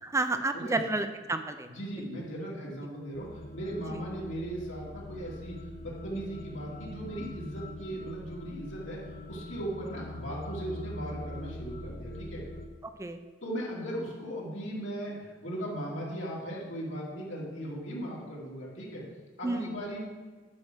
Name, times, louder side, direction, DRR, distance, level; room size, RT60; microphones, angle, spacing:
voice 1, 0.0-1.7 3.9-4.0 13.0-13.2 19.4-19.7, right 2 dB, 15° right, 8 dB, 0.4 m, -30 dB
voice 2, 1.7-5.5 5.8-9.0 9.3-12.4 13.4-19.0 19.4-20.1, right 1 dB, 80° left, -4 dB, 2.7 m, -38 dB
sound 1, 3.1-12.7, left 1 dB, 50° left, 0.6 m, -43 dB
10.5 x 4.8 x 6.2 m, 1.3 s
head